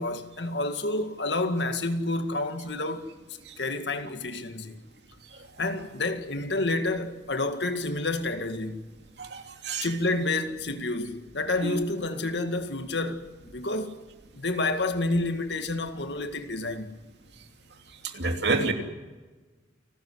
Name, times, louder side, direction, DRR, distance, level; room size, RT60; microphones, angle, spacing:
voice 1, 0.0-3.1 3.6-4.8 5.6-8.9 9.8-14.0 14.3-17.0, left 2 dB, 70° left, 2.1 m, -29 dB
voice 2, 9.2-9.9 11.6-11.7 18.1-18.7, right 3 dB, 65° right, 3.0 m, -28 dB
29.5 x 13.5 x 9.8 m
head